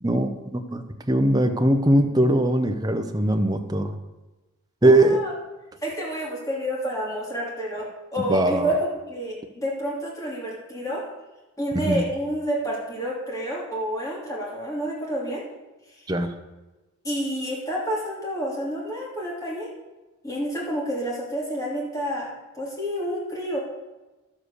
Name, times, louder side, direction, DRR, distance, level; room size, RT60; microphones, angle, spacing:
voice 1, 0.0-4.0 4.8-5.2 8.3-8.7 11.7-12.0 16.1-16.3, right 1 dB, 15° right, 5 dB, 0.8 m, -21 dB
voice 2, 4.8-5.3 5.8-11.0 11.6-15.4 17.0-19.7 20.2-23.6, equal, 15° left, -3 dB, 2.7 m, -29 dB
12.0 x 7.4 x 6.6 m, 1.1 s
head